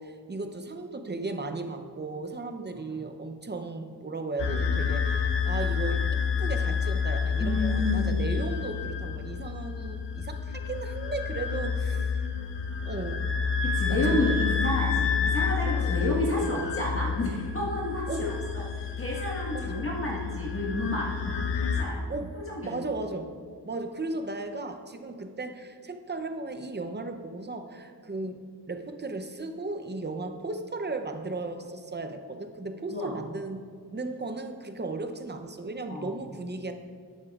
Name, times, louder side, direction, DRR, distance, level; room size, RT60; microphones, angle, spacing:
voice 1, 0.0-12.2 12.8-13.3 13.9-14.3 18.1-18.3 19.5-19.9 22.1-23.3 23.6-36.7, right 3 dB, 25° right, 7 dB, 0.7 m, -36 dB
sound 1, 4.4-21.8, left 6 dB, 85° left, 0.8 m, -29 dB
voice 2, 7.4-8.4 13.6-21.1 21.6-22.1 22.3-22.8 32.9-33.2 35.9-36.1, left 1 dB, 30° left, -4 dB, 1.5 m, -30 dB
12.0 x 8.2 x 2.4 m, 2.1 s
wide cardioid pair, 65°, 41 cm